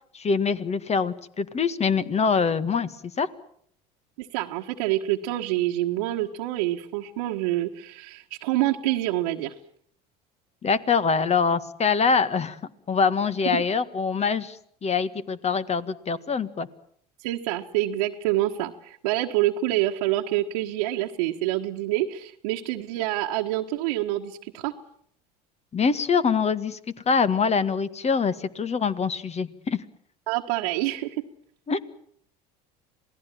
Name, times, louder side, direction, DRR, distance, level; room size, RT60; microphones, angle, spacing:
voice 1, 0.1-2.9 3.2-3.3 10.6-12.6 12.9-14.6 14.8-16.7 25.7-26.8 27.0-29.8 31.7-31.8, left 5 dB, 30° left, 14 dB, 1.8 m, -24 dB
voice 2, 4.2-9.5 13.4-13.6 17.2-24.7 30.3-31.2, right 15 dB, 75° right, -1 dB, 1.5 m, -27 dB
27.0 x 18.0 x 7.5 m, 0.65 s
hypercardioid pair, 75°, 20 cm